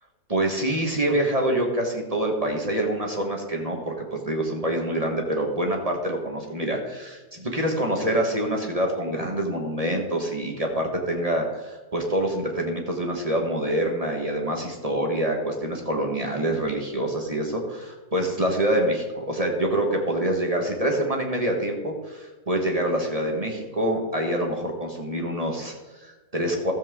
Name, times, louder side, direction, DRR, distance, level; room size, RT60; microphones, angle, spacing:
voice 1, 0.3-26.7, right 1 dB, 25° right, 1 dB, 1.5 m, -26 dB
14.0 x 7.9 x 3.7 m, 1.2 s
omnidirectional pair, 1.6 m